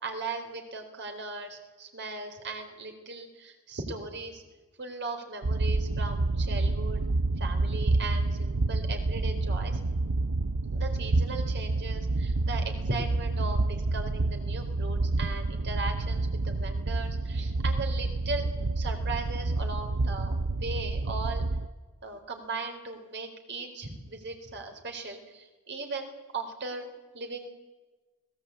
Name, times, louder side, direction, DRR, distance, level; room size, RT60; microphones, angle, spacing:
voice 1, 0.0-4.4 4.8-7.0 7.4-9.8 10.7-18.5 18.8-21.4 22.0-27.5, right 3 dB, 55° right, 5 dB, 4.1 m, -38 dB
sound 1, 5.4-21.7, right 2 dB, 85° right, 0.8 m, -28 dB
25.5 x 18.0 x 8.5 m, 1.2 s
head